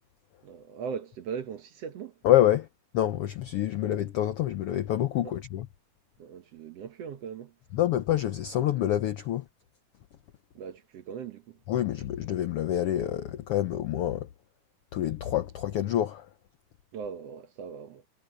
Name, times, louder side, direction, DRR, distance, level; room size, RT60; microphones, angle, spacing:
voice 1, 0.4-2.2 5.2-5.4 6.2-7.5 10.5-11.6 16.9-18.1, right 7 dB, 60° right, 2.0 m, -39 dB
voice 2, 2.2-2.7 2.9-5.7 7.7-9.5 11.7-14.3 14.9-16.3, left 12 dB, 75° left, 1.3 m, -27 dB
omnidirectional pair, 3.5 m